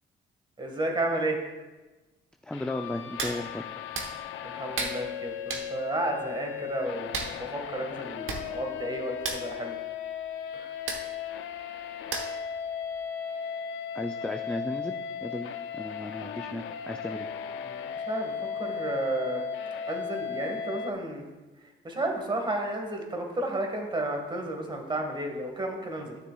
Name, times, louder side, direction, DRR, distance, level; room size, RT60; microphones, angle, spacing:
voice 1, 0.6-1.4 4.4-9.8 10.5-10.7 17.6-19.4 19.9-21.2 21.8-26.2, right 1 dB, 25° right, 3 dB, 1.6 m, -32 dB
voice 2, 2.4-3.7 13.9-17.3, left 1 dB, 5° left, 4 dB, 0.4 m, -35 dB
sound 1, 2.5-20.9, left 8 dB, 80° left, 0.5 m, -36 dB
Hands, 3.2-3.4 3.9-4.1 4.7-5.0 5.5-5.7 7.1-7.3 8.0-8.1 8.3-8.4 8.7-8.9 9.2-9.4 10.9-11.0 12.1-12.4 12.9-13.0, right 4 dB, 80° right, 1.1 m, -32 dB
13.0 x 6.6 x 2.3 m, 1.2 s
cardioid pair, 90°, 20 cm